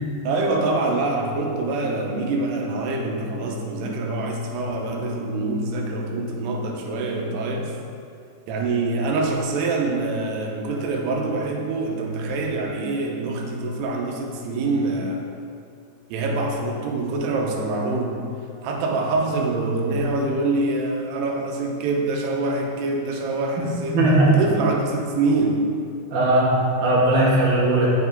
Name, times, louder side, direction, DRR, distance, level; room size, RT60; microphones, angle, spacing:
voice 1, 0.2-7.7 8.5-15.2 16.1-18.2 18.6-25.6, right 2 dB, 85° right, 1 dB, 2.9 m, -25 dB
voice 2, 23.9-24.3 26.1-27.9, right 1 dB, 45° right, -6 dB, 1.7 m, -18 dB
10.0 x 7.3 x 3.6 m, 2.4 s
omnidirectional pair, 4.6 m